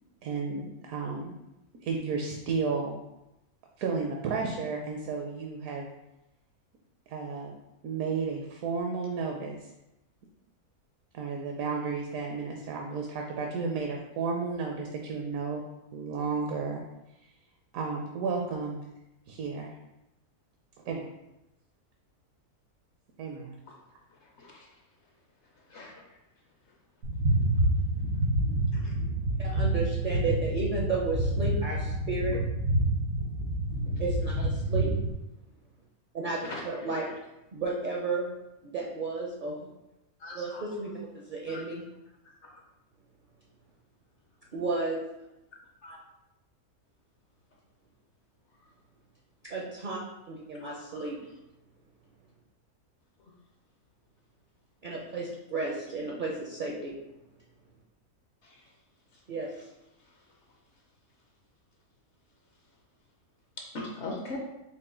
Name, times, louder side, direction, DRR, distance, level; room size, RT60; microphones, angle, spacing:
voice 1, 0.2-1.3 1.8-3.0 3.8-5.9 7.1-7.5 7.8-9.7 11.1-15.6 15.9-16.8 17.7-18.9 19.3-19.8 20.8-21.1 23.2-23.6, right 4 dB, 70° right, 1 dB, 1.0 m, -32 dB
voice 2, 24.4-24.7 25.7-25.9 28.7-28.9 36.4-36.6 37.1-37.2 40.2-40.6 41.5-41.6 42.4-42.5 45.8-46.0 50.6-51.0 58.4-58.6 63.7-64.4, left 2 dB, 60° left, 0 dB, 0.8 m, -41 dB
sound 1, 27.0-35.1, right 1 dB, 90° right, 1.7 m, -28 dB
voice 3, 29.4-32.4 34.0-34.9 36.1-36.4 36.6-37.1 37.5-38.3 38.7-39.6 40.3-41.8 44.5-45.0 49.4-50.0 50.3-51.2 54.8-56.9 59.3-59.5, right 3 dB, 55° right, -2 dB, 0.5 m, -33 dB
5.4 x 2.2 x 3.8 m, 0.92 s
omnidirectional pair, 1.6 m